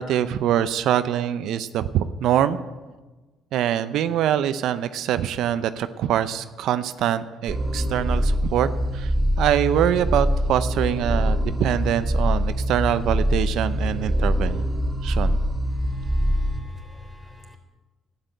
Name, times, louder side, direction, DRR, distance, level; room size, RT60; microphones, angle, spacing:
voice 1, 0.0-2.6 3.5-8.7 8.9-14.7 15.0-15.4, right 10 dB, 75° right, 12 dB, 0.6 m, -24 dB
sound 1, 7.5-16.6, equal, 20° right, 3.4 m, -24 dB
voice 2, 16.0-17.6, left 2 dB, 15° left, 5 dB, 3.7 m, -42 dB
12.0 x 8.8 x 9.2 m, 1.2 s
supercardioid pair, 75°, 0 cm